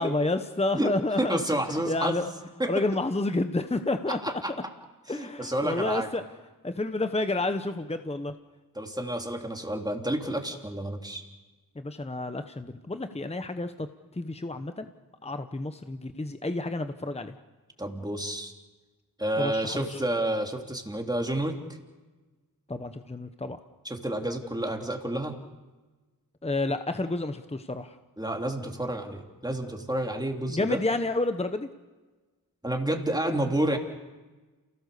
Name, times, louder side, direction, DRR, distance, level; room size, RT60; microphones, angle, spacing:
voice 1, 0.0-1.4 1.9-2.3 2.7-4.4 5.1-6.2 6.6-8.3 11.7-13.9 14.1-14.9 15.2-17.4 19.3-20.0 22.7-23.6 26.4-28.0 30.5-31.7, left 2 dB, 20° left, 8 dB, 1.0 m, -30 dB
voice 2, 0.8-2.2 2.6-2.7 4.1-4.5 5.1-6.1 8.7-11.2 17.8-18.5 19.2-21.6 23.8-25.4 28.2-30.8 32.6-33.8, right 1 dB, 10° right, 2 dB, 3.3 m, -30 dB
28.5 x 17.5 x 7.0 m, 1.2 s
wide cardioid pair, 60°, 35 cm